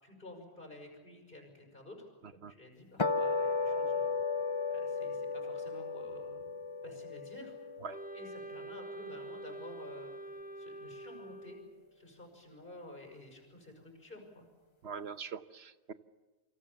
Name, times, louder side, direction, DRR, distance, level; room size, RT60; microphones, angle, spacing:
voice 1, 0.0-4.1 4.7-6.4 6.8-7.5 8.1-11.6 11.9-14.5, left 1 dB, 50° left, 3 dB, 6.5 m, -51 dB
sound 1, 3.0-9.5, left 4 dB, 30° left, 0.8 m, -35 dB
Wind instrument woodwind instrument, 7.9-11.9, right 2 dB, 10° right, 1.0 m, -46 dB
voice 2, 14.8-15.9, right 6 dB, 70° right, 12 dB, 1.2 m, -42 dB
28.5 x 24.5 x 7.1 m, 1.2 s
omnidirectional pair, 1.1 m